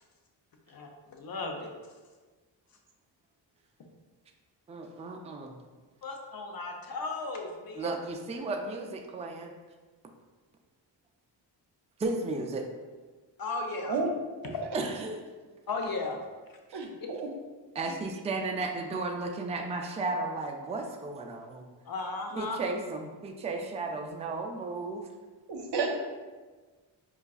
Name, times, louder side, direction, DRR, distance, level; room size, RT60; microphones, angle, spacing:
voice 1, 0.7-1.7 6.0-8.0 13.4-14.0 14.5-14.7 15.7-16.2 17.9-18.0 21.8-22.6, left 3 dB, 45° left, 2 dB, 0.7 m, -35 dB
voice 2, 4.7-5.6 7.8-9.5 12.0-12.7 14.7-15.2 17.8-21.7 22.4-25.1, right 3 dB, 15° right, 3 dB, 0.3 m, -34 dB
voice 3, 16.7-17.3 25.5-25.9, right 4 dB, 55° right, 2 dB, 0.7 m, -31 dB
4.5 x 2.4 x 2.4 m, 1.4 s
supercardioid pair, 45°, 48 cm